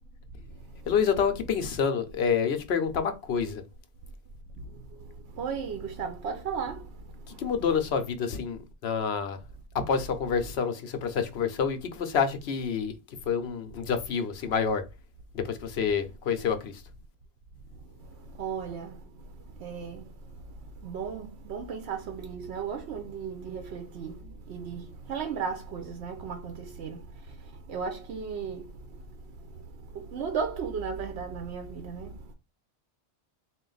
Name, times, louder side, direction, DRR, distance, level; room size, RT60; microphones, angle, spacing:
voice 1, 0.4-0.9 4.6-7.5 17.7-32.3, right 6 dB, 80° right, 0.9 m, -36 dB
voice 2, 0.9-3.6 7.4-9.4 9.7-12.9 13.3-14.8 15.3-16.7, left 6 dB, 75° left, 0.9 m, -28 dB
3.9 x 2.5 x 3.8 m
omnidirectional pair, 1.1 m